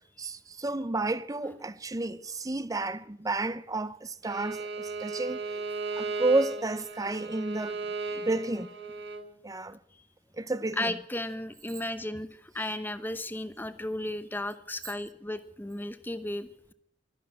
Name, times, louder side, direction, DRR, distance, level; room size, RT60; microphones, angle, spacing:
voice 1, 0.2-5.5 6.0-7.9 8.1-8.7 9.4-9.8 10.4-10.9, right 2 dB, 20° right, 0.6 m, -31 dB
Bowed string instrument, 4.2-9.2, right 3 dB, 70° right, 1.7 m, -36 dB
voice 2, 10.8-16.7, left 1 dB, 10° left, 0.9 m, -35 dB
12.5 x 11.0 x 7.7 m
head